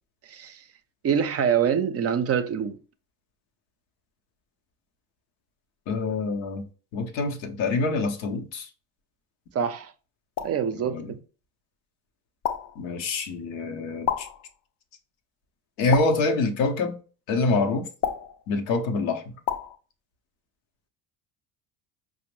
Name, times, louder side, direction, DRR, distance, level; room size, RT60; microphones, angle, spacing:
voice 1, 0.3-0.6 1.0-2.8 9.5-9.9 10.4-11.2, right 7 dB, 35° right, 0.5 m, -25 dB
voice 2, 5.9-6.6 6.9-8.7 10.8-11.1 12.8-14.3 15.8-17.0 17.3-17.9 18.5-19.2, left 3 dB, 85° left, 0.7 m, -26 dB
sound 1, 10.4-10.7 12.4-12.8 14.1-14.5 15.9-16.4 18.0-18.4 19.5-19.8, left 8 dB, 45° left, 0.5 m, -30 dB
4.9 x 2.0 x 3.1 m
hypercardioid pair, 65°, 43 cm